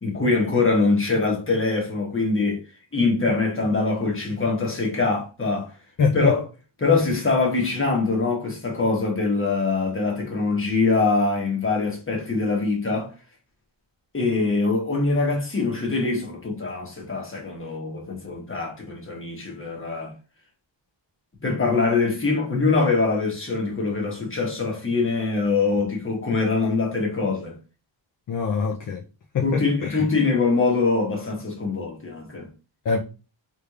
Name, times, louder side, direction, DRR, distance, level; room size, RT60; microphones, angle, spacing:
voice 1, 0.0-2.6 2.9-5.7 6.1-6.4 6.8-13.1 14.1-20.1 21.4-27.6 29.4-32.5, left 3 dB, 25° left, 1.2 m, -23 dB
voice 2, 6.0-6.4 28.3-29.0 29.3-30.1 32.9-33.0, left 5 dB, 45° left, 0.5 m, -24 dB
3.5 x 3.2 x 2.4 m
wide cardioid pair, 105°, 47 cm